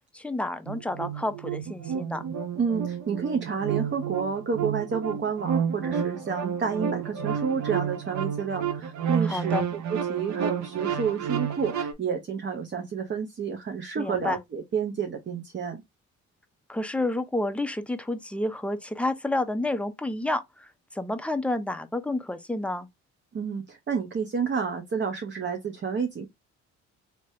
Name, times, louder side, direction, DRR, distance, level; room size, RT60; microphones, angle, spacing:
voice 1, 0.1-2.2 9.2-9.7 14.0-14.4 16.7-22.9, left 1 dB, 5° left, 0.6 m, -30 dB
sound 1, 0.7-11.9, right 7 dB, 70° right, 0.8 m, -30 dB
voice 2, 2.6-15.8 23.3-26.3, right 6 dB, 40° right, 0.8 m, -30 dB
3.3 x 2.9 x 2.7 m
cardioid pair, 90°, 30 cm